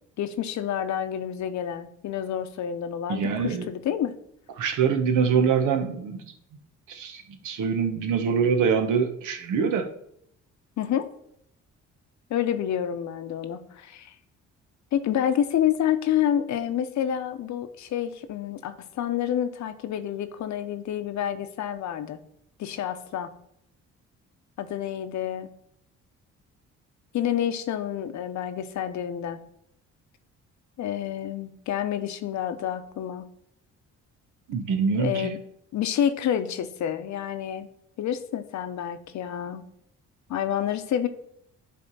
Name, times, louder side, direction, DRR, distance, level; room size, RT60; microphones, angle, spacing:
voice 1, 0.2-4.2 10.8-11.1 12.3-14.1 14.9-22.2 22.6-23.3 24.6-25.5 27.1-29.4 30.8-33.2 35.0-35.4 35.7-37.7 38.0-39.6 40.3-41.1, left 10 dB, 70° left, 10 dB, 0.8 m, -28 dB
voice 2, 3.1-3.7 4.6-6.3 6.9-9.9 34.5-35.3, right 6 dB, 80° right, 5 dB, 1.1 m, -24 dB
10.0 x 3.4 x 5.4 m, 0.72 s
cardioid pair, 90°, 30 cm